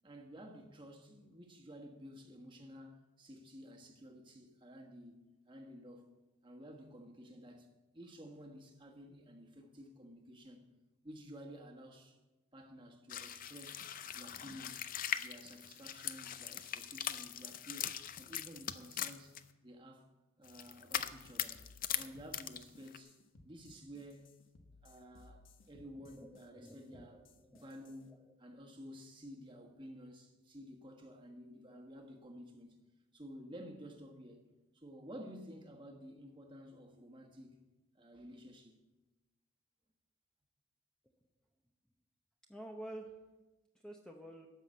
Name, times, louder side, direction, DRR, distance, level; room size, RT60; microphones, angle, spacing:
voice 1, 0.0-6.1 6.4-7.7 7.9-10.7 11.0-12.2 12.5-13.9 14.1-20.1 20.4-23.2 23.4-24.4 24.8-32.8 33.1-34.5 34.7-37.6 37.9-38.8, equal, 25° right, 1.4 m, -53 dB
sound 1, 13.1-19.4 20.4-22.1 22.3-23.0, left 10 dB, 40° left, 0.5 m, -41 dB
sound 2, 20.9-28.0, left 2 dB, 70° left, 1.2 m, -61 dB
voice 2, 25.7-27.1 27.5-28.2 42.5-43.1 43.8-44.5, right 1 dB, 5° left, 0.8 m, -50 dB
13.0 x 5.9 x 8.3 m
head